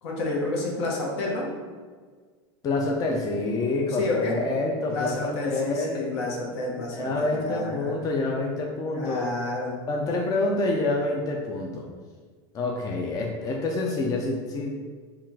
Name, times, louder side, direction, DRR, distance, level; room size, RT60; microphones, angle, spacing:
voice 1, 0.0-1.5 4.0-4.3 4.9-8.0 8.9-9.8, left 2 dB, 70° left, -2 dB, 1.2 m, -30 dB
voice 2, 2.6-6.0 6.9-9.3 9.9-11.9 12.5-14.8, left 2 dB, 25° left, 0 dB, 0.5 m, -27 dB
3.6 x 2.4 x 4.5 m, 1.5 s
supercardioid pair, 130°, 14 cm